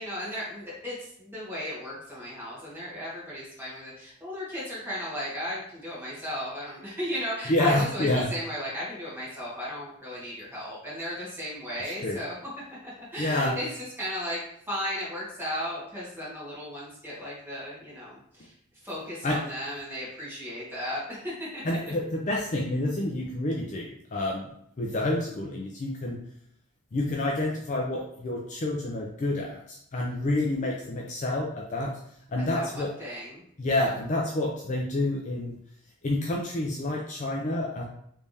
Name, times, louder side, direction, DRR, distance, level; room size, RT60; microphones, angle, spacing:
voice 1, 0.0-13.7 14.0-14.4 14.7-18.5 18.8-21.8 32.5-33.4, equal, 10° right, -8 dB, 1.4 m, -35 dB
voice 2, 7.5-8.3 12.0-12.2 13.2-13.5 19.2-19.4 21.6-24.5 24.8-26.2 26.9-31.9 32.3-32.9 33.6-35.6 36.0-37.8, left 1 dB, 35° left, -1 dB, 0.4 m, -28 dB
3.3 x 3.3 x 2.7 m, 0.70 s
head